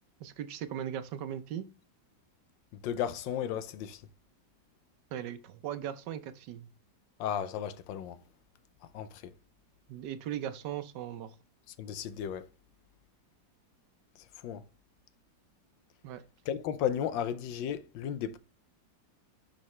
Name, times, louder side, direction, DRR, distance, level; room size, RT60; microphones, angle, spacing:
voice 1, 0.2-1.7 5.1-6.7 9.9-11.3 16.0-16.2, right 10 dB, 75° right, 1.2 m, -38 dB
voice 2, 2.7-4.0 7.2-8.2 8.9-9.3 11.8-12.5 14.4-14.6 16.5-18.4, left 9 dB, 90° left, 1.4 m, -34 dB
10.0 x 3.9 x 3.2 m
omnidirectional pair, 2.0 m